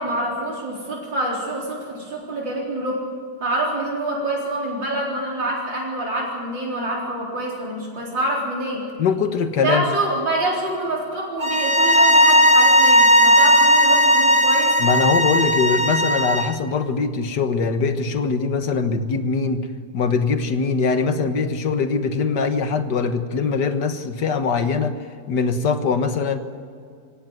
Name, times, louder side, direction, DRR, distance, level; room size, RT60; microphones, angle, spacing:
voice 1, 0.0-3.0 3.4-8.8 9.6-14.7, right 1 dB, 75° right, -3 dB, 4.8 m, -26 dB
voice 2, 9.0-9.9 14.8-19.7 19.9-24.9 25.3-26.4, left 5 dB, 65° left, 8 dB, 2.0 m, -22 dB
sound 1, 11.4-16.6, equal, 20° right, 1.0 m, -16 dB
25.5 x 17.5 x 9.4 m, 2.3 s
omnidirectional pair, 2.0 m